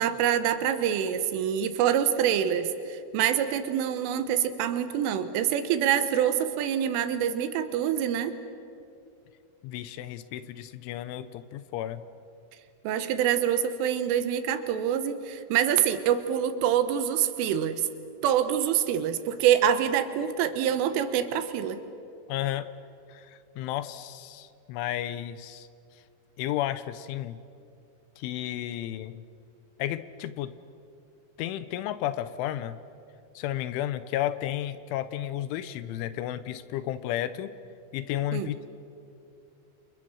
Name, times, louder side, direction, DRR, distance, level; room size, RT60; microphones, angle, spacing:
voice 1, 0.0-8.4 12.9-17.8 18.2-21.8 38.3-38.5, right 9 dB, 80° right, 10 dB, 3.7 m, -26 dB
voice 2, 9.6-12.0 22.3-22.7 23.1-25.7 26.4-27.4 28.2-29.2 29.8-30.5 31.4-32.8 33.4-37.5 37.9-38.7, left 12 dB, 80° left, 13 dB, 3.0 m, -32 dB
29.0 x 28.5 x 6.3 m, 2.5 s
omnidirectional pair, 5.8 m